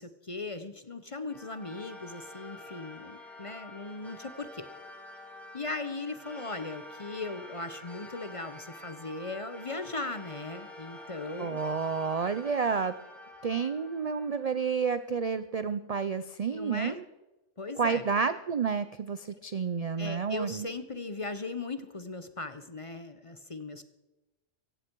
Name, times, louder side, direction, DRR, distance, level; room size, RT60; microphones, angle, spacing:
voice 1, 0.0-4.7 5.5-11.6 16.5-17.0 17.6-18.0 20.0-23.8, left 3 dB, 30° left, 11 dB, 0.7 m, -38 dB
sound 1, 1.3-15.1, left 1 dB, ahead, 2.4 m, -48 dB
voice 2, 11.4-12.9 13.4-17.0 17.8-20.7, right 5 dB, 50° right, 13 dB, 0.4 m, -30 dB
16.5 x 15.5 x 4.6 m, 1.0 s
omnidirectional pair, 1.3 m